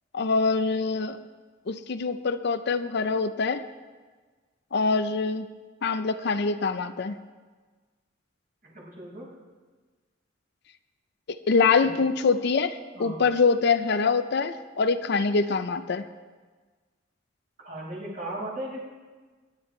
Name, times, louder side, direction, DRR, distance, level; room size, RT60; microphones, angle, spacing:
voice 1, 0.1-1.2 1.7-3.6 4.7-5.5 5.8-7.2 11.3-16.1, left 4 dB, 60° left, 11 dB, 0.6 m, -24 dB
voice 2, 8.6-9.3 11.8-11.9 12.9-13.2 17.6-18.8, right 1 dB, 50° right, -5 dB, 5.1 m, -36 dB
23.0 x 10.5 x 3.3 m, 1.4 s
head